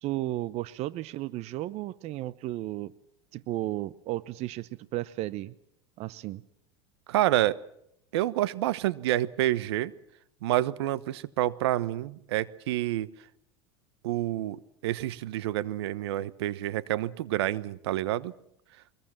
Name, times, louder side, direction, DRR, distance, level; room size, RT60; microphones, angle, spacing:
voice 1, 0.0-2.9 3.3-5.5 6.0-6.4, right 16 dB, 50° right, 18 dB, 0.9 m, -34 dB
voice 2, 7.1-7.6 8.1-9.9 10.4-13.1 14.0-18.3, right 14 dB, 75° right, 17 dB, 1.1 m, -28 dB
24.0 x 21.0 x 7.5 m, 0.76 s
hypercardioid pair, 90°, 14 cm